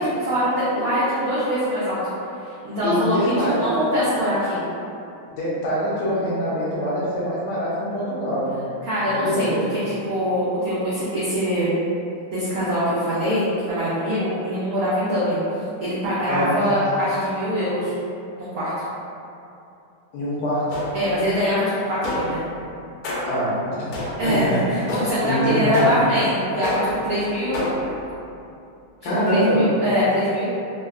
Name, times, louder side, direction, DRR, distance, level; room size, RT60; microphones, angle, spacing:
voice 1, 0.0-2.0 2.6-4.6 8.8-9.5 9.8-11.7 12.3-15.4 15.8-17.9 18.4-18.7 20.9-22.4 24.2-27.6 29.0-30.5, equal, 85° right, -11 dB, 0.7 m, -23 dB
voice 2, 2.8-3.6 5.3-8.5 9.1-9.6 16.3-16.6 20.1-20.8 23.2-23.9 24.2-24.8 25.3-25.9 29.0-29.6, equal, 65° left, -9 dB, 1.1 m, -24 dB
sound 1, 20.7-21.2 22.0-22.5 23.0-23.5 23.9-24.4 24.9-25.3 25.7-26.2 26.6-27.1 27.5-28.0, left 1 dB, 85° left, 1.5 m, -28 dB
3.6 x 2.2 x 2.3 m, 2.7 s
omnidirectional pair, 2.4 m